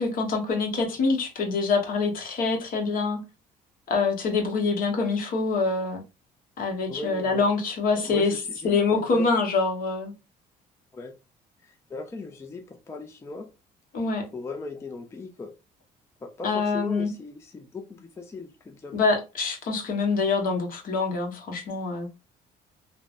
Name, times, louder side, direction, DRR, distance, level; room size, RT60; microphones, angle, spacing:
voice 1, 0.0-3.2 3.9-6.0 6.6-8.3 8.6-10.1 13.9-14.2 16.4-17.1 18.9-22.1, left 4 dB, 55° left, 1.0 m, -25 dB
voice 2, 6.9-7.5 7.9-9.3 10.9-11.1 11.6-13.5 14.3-15.5 16.2-19.0, left 3 dB, 15° left, 0.4 m, -37 dB
3.2 x 2.1 x 2.4 m
cardioid pair, 110°, 17 cm